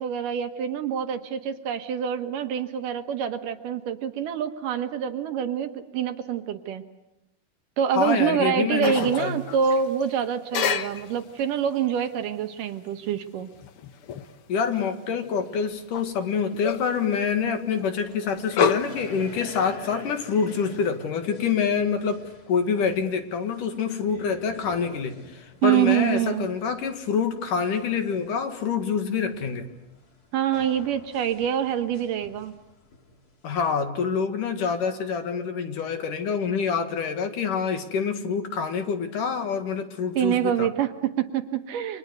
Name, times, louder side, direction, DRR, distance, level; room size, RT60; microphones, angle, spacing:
voice 1, 0.0-6.8 7.8-13.5 25.6-26.5 30.3-32.5 40.2-42.0, right 8 dB, 65° right, 8 dB, 2.6 m, -26 dB
voice 2, 7.9-9.4 14.5-29.7 33.4-40.7, left 6 dB, 60° left, 8 dB, 3.2 m, -26 dB
sound 1, 8.8-10.1 10.5-11.5 13.2-14.9 15.2-16.0 16.5-17.0 18.3-19.1 19.4-19.5 20.0-20.3, left 7 dB, 80° left, 1.2 m, -29 dB
sound 2, 15.7-15.8 15.9-16.0 16.6-29.0 29.3-33.6, left 3 dB, 30° left, 2.4 m, -47 dB
29.5 x 25.0 x 8.1 m, 0.91 s
omnidirectional pair, 4.3 m